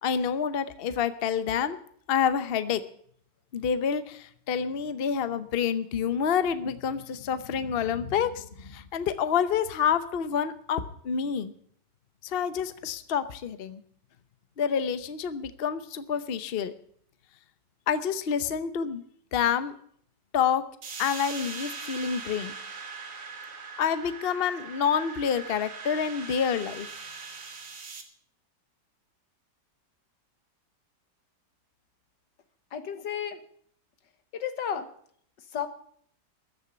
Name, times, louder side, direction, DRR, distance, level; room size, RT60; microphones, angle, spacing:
voice 1, 0.0-1.8 2.1-2.8 3.5-11.5 12.2-13.8 14.6-16.7 17.9-19.0 19.3-19.7 20.3-20.6 21.0-22.5 23.8-26.9, left 7 dB, 45° left, 12 dB, 0.8 m, -28 dB
sound 1, 20.8-28.0, right 5 dB, 50° right, 2.0 m, -41 dB
voice 2, 32.7-33.4 34.3-34.9 35.4-35.7, left 8 dB, 80° left, 9 dB, 2.0 m, -33 dB
14.5 x 7.1 x 9.8 m, 0.62 s
omnidirectional pair, 1.9 m